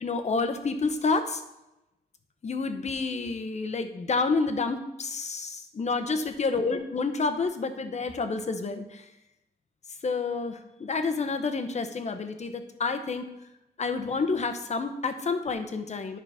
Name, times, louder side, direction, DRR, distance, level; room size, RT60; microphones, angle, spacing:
voice 1, 0.0-1.4 2.4-9.0 10.0-13.2 13.8-16.2, left 4 dB, 40° left, 8 dB, 0.9 m, -29 dB
11.0 x 5.6 x 3.6 m, 0.91 s
wide cardioid pair, 110°, 18 cm